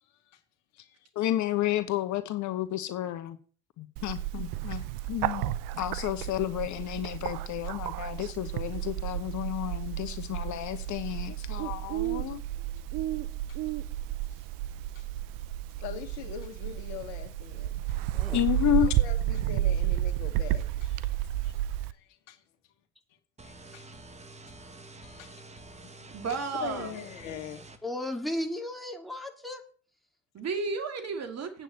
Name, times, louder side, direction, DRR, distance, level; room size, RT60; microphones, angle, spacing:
voice 1, 0.0-0.4 0.7-1.1 4.7-4.8 13.5-13.6 14.3-14.5 14.9-15.1 15.8-18.0 18.8-21.1 21.4-21.5 21.8-22.4 23.4-23.8 24.6-24.7 25.0-25.3 26.3-27.6, left 10 dB, 75° left, 1.6 m, -43 dB
voice 2, 1.1-3.4 3.8-4.8 5.1-5.5 5.8-12.4 18.3-18.9, left 13 dB, 50° left, 1.1 m, -31 dB
Bird, 4.0-21.9, right 13 dB, 60° right, 0.8 m, -32 dB
voice 3, 18.1-18.5 27.8-29.6, left 1 dB, ahead, 2.6 m, -35 dB
sound 1, 23.4-27.8, right 2 dB, 20° right, 1.6 m, -48 dB
voice 4, 26.1-27.0 30.4-31.6, right 4 dB, 45° right, 2.4 m, -33 dB
8.3 x 6.1 x 8.1 m
hypercardioid pair, 65°, 36 cm